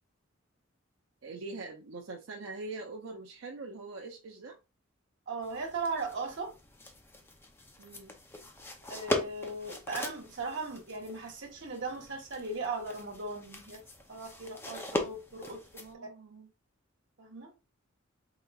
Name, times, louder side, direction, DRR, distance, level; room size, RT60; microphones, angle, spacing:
voice 1, 1.2-4.6 7.8-8.1 15.8-16.5, right 3 dB, 90° right, 0.6 m, -43 dB
voice 2, 5.3-6.5 8.9-13.8 14.1-15.8 17.2-17.5, right 3 dB, 65° right, 1.3 m, -38 dB
sound 1, 5.4-15.9, left 1 dB, 10° left, 0.5 m, -40 dB
3.9 x 3.9 x 2.3 m
head